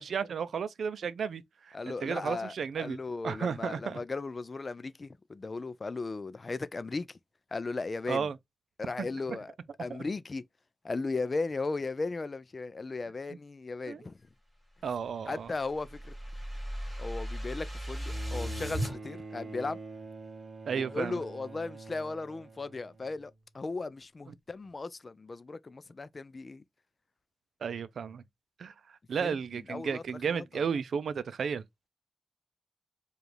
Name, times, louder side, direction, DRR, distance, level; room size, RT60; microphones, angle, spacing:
voice 1, 0.0-1.4 1.7-4.0 8.1-8.4 9.0-9.4 13.9-14.0 14.8-15.5 20.7-21.2 24.3-24.4 27.6-28.2 28.6-28.7 29.1-31.6, right 6 dB, 85° right, 0.4 m, -33 dB
voice 2, 1.7-7.1 7.5-8.3 8.8-9.5 9.8-10.4 10.8-14.2 15.3-16.1 17.0-19.8 20.8-26.6 29.2-29.4 29.7-30.0 30.3-30.7, left 3 dB, 35° left, 0.3 m, -36 dB
sound 1, 15.0-18.9, equal, 15° right, 2.5 m, -37 dB
Bowed string instrument, 18.1-23.5 24.6-24.7, right 3 dB, 45° right, 0.7 m, -46 dB
4.9 x 2.4 x 3.1 m
wide cardioid pair, 140°, 0 cm